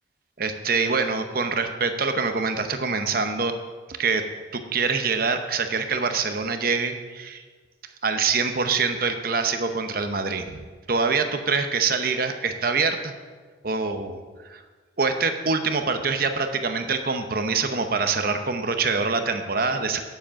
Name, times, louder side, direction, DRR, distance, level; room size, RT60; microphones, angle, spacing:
voice 1, 0.4-3.5 3.9-4.2 4.5-7.4 8.0-10.6 10.9-13.1 13.6-14.2 14.5-14.6 15.0-20.0, right 4 dB, 50° right, 7 dB, 0.8 m, -25 dB
10.0 x 7.3 x 5.7 m, 1.4 s
head